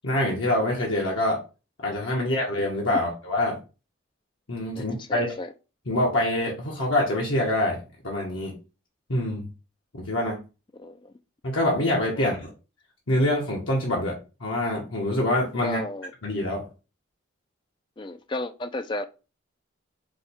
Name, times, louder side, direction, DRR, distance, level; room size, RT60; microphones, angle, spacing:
voice 1, 0.0-1.4 1.8-3.6 4.5-5.3 5.9-8.5 9.1-9.5 9.9-10.4 11.4-12.5 13.1-15.8 16.2-16.6, left 1 dB, 80° left, 1.2 m, -25 dB
voice 2, 4.7-5.5 10.7-11.1 12.2-12.4 15.6-16.1 18.0-19.0, left 2 dB, 25° left, 0.3 m, -33 dB
4.9 x 2.3 x 4.3 m
head